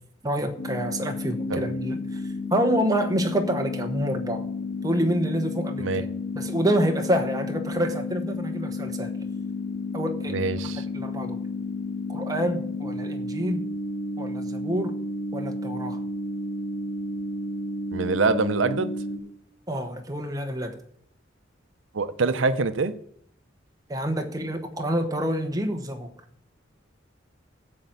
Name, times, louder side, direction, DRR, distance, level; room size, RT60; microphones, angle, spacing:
voice 1, 0.2-2.2 2.5-4.4 4.8-6.1 6.3-9.1 9.9-11.4 12.1-13.7 14.2-15.0 15.3-16.0 19.7-20.8 23.9-26.1, equal, 20° right, 5 dB, 1.0 m, -27 dB
sound 1, 0.6-19.2, left 3 dB, 60° left, 2.4 m, -32 dB
voice 2, 10.3-10.8 17.9-18.9 21.9-22.9, right 3 dB, 90° right, 12 dB, 0.6 m, -24 dB
12.0 x 4.4 x 8.1 m, 0.66 s
head